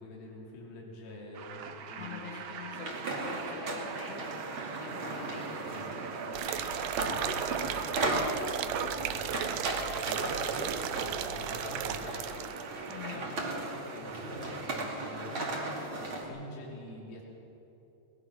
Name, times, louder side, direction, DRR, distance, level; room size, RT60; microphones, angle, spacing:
voice 1, 0.0-2.2 5.7-6.0 7.0-7.9 8.2-12.5 12.9-17.2, left 2 dB, 80° left, -3 dB, 4.6 m, -47 dB
sound 1, 1.3-15.8, right 6 dB, 65° right, 1.8 m, -43 dB
voice 2, 2.0-5.8 12.9-13.3, left 7 dB, 65° left, 1 dB, 2.5 m, -46 dB
sound 2, 2.7-16.2, right 2 dB, 35° right, 3.0 m, -36 dB
sound 3, 6.3-12.6 12.9-13.0, right 11 dB, 85° right, 2.6 m, -36 dB
22.0 x 19.5 x 6.2 m, 2.9 s
omnidirectional pair, 4.1 m